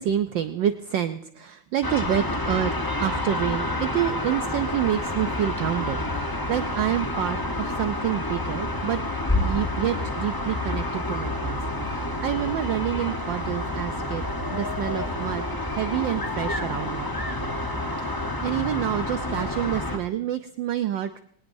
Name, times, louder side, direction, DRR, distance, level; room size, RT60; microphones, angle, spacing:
voice 1, 0.0-14.2 14.5-17.1 18.0-21.2, right 11 dB, 70° right, 9 dB, 1.2 m, -28 dB
sound 1, 1.8-20.0, left 1 dB, 25° left, 0.4 m, -29 dB
21.0 x 18.5 x 2.7 m, 0.66 s
omnidirectional pair, 2.4 m